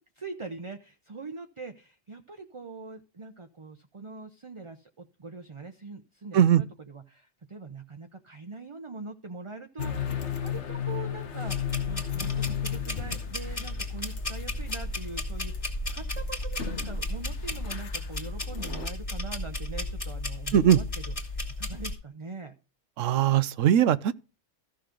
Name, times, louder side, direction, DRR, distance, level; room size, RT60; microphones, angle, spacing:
voice 1, 0.2-20.9 21.2-22.5, right 4 dB, 30° right, 0.7 m, -42 dB
sound 1, 9.8-18.9, left 9 dB, 65° left, 1.5 m, -35 dB
sound 2, 11.5-21.9, left 2 dB, 25° left, 2.4 m, -34 dB
voice 2, 23.0-24.1, right 10 dB, 85° right, 1.0 m, -20 dB
14.5 x 6.4 x 3.8 m
omnidirectional pair, 1.3 m